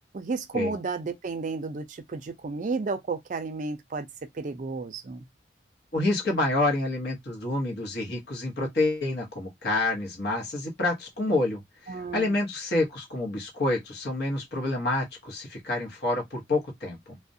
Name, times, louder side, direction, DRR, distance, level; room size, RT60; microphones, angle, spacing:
voice 1, 0.1-4.1 4.3-5.2 11.9-12.4, right 4 dB, 40° right, 0.4 m, -32 dB
voice 2, 5.9-17.2, left 2 dB, 60° left, 0.9 m, -28 dB
2.3 x 2.1 x 2.6 m
head